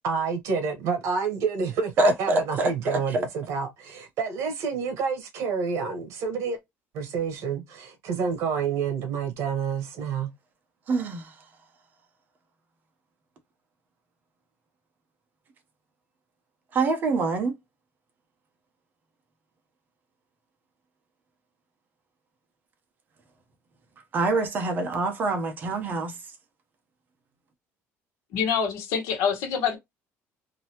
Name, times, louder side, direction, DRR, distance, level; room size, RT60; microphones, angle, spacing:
voice 1, 0.0-6.6 6.9-10.3, right 5 dB, 65° right, 1.5 m, -28 dB
voice 2, 2.0-3.2 10.9-11.3 16.7-17.5 24.1-26.1, right 2 dB, 35° right, 1.0 m, -25 dB
voice 3, 28.3-29.8, left 7 dB, 80° left, 1.4 m, -26 dB
3.8 x 2.8 x 3.0 m
cardioid pair, 155°, 5 cm